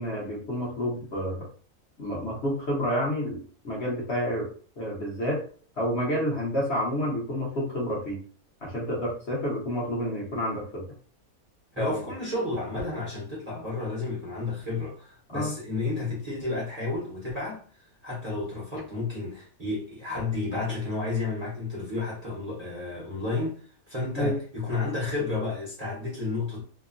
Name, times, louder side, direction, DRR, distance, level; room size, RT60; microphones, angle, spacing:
voice 1, 0.0-1.5 2.0-4.5 4.8-5.4 5.8-8.2 8.6-10.8 11.8-12.0 15.3-15.5 24.2-24.4, equal, 50° left, 1.1 m, -29 dB
voice 2, 11.8-17.6 18.0-26.6, left 3 dB, 35° right, 0.8 m, -31 dB
2.9 x 2.2 x 2.4 m
omnidirectional pair, 1.5 m